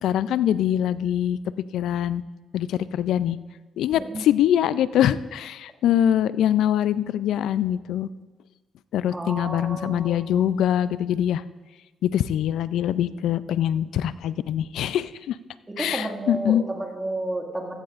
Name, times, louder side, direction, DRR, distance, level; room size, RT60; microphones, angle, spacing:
voice 1, 0.0-1.4 1.7-2.2 2.5-3.4 3.8-8.1 8.9-11.4 12.0-15.4 15.8-16.6, left 10 dB, 80° left, 16 dB, 0.4 m, -23 dB
voice 2, 9.1-10.5 15.7-17.8, right 2 dB, 20° right, 1 dB, 2.0 m, -32 dB
15.5 x 14.0 x 2.5 m, 1.2 s
cardioid pair, 90°, 0 cm